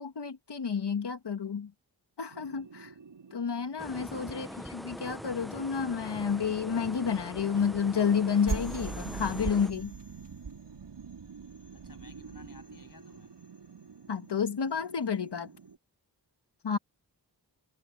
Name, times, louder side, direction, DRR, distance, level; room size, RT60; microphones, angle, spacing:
voice 1, 0.0-1.7 2.2-2.9 3.3-10.0 14.1-15.5 16.6-16.8, left 6 dB, 65° left, 1.8 m, -30 dB
sound 1, 2.3-5.4 8.5-15.8, right 5 dB, 75° right, 4.6 m, -42 dB
sound 2, 3.8-9.7, equal, ahead, 0.7 m, -43 dB
voice 2, 4.3-4.8 11.7-13.3, left 3 dB, 50° left, 7.7 m, -56 dB
cardioid pair, 40°, 43 cm